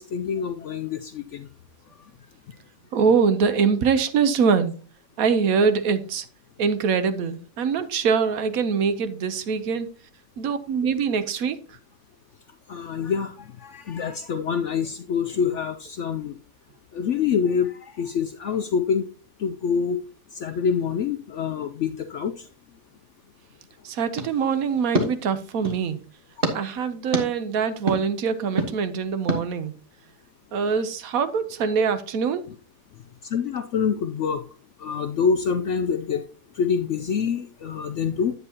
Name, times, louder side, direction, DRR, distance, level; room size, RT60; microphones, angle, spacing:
voice 1, 0.0-1.5 12.7-16.3 16.9-19.1 19.4-20.0 20.3-22.3 26.4-26.5 33.3-34.4 34.8-36.2 36.6-38.3, left 6 dB, 65° left, 0.7 m, -26 dB
voice 2, 2.9-4.7 5.2-6.2 6.6-9.9 10.4-11.6 23.8-26.0 26.5-29.7 30.5-32.5, right 6 dB, 65° right, 1.2 m, -23 dB
sound 1, 24.1-25.9 26.4-26.6 27.1-27.3 27.9-28.0 28.6-28.7 29.3-29.4, right 1 dB, 35° right, 1.4 m, -27 dB
9.6 x 8.0 x 2.8 m
omnidirectional pair, 1.7 m